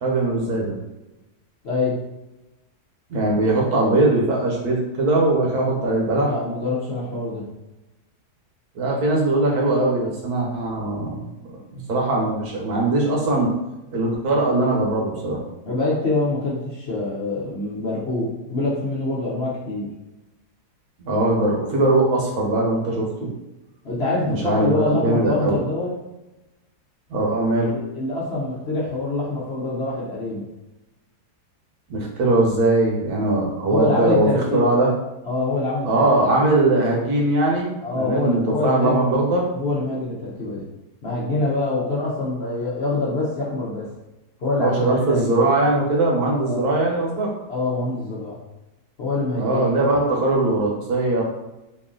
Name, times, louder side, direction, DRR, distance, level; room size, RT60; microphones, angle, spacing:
voice 1, 0.0-0.7 3.1-6.3 8.8-13.5 13.9-15.4 21.0-23.3 24.2-25.6 27.1-27.7 31.9-34.9 35.8-39.5 44.6-47.3 49.4-51.2, right 2 dB, 70° right, -2 dB, 1.4 m, -20 dB
voice 2, 1.6-1.9 6.3-7.4 15.7-19.9 23.8-25.9 27.7-30.4 33.7-34.8 35.2-36.3 37.8-39.0 39.5-40.6 41.0-43.9 44.4-45.4 46.3-46.6 47.5-48.4 49.0-49.6, left 2 dB, 55° left, -6 dB, 0.8 m, -25 dB
3.1 x 2.7 x 3.7 m, 1.0 s
omnidirectional pair, 1.7 m